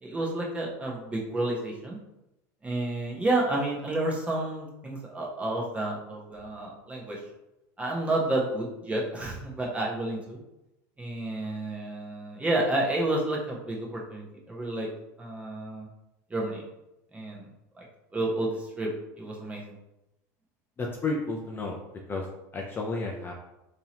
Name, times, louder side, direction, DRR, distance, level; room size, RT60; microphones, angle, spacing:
voice 1, 0.0-2.0 2.6-7.2 7.8-10.4 11.0-14.9 15.2-15.9 16.3-16.6 17.1-17.4 17.8-17.9 18.1-18.9 19.2-19.7, right 2 dB, 15° right, -2 dB, 0.9 m, -30 dB
voice 2, 20.8-21.8 22.1-22.2 22.5-23.3, left 3 dB, 20° left, 0 dB, 0.5 m, -31 dB
3.7 x 2.8 x 2.9 m, 0.92 s
supercardioid pair, 120°, 9 cm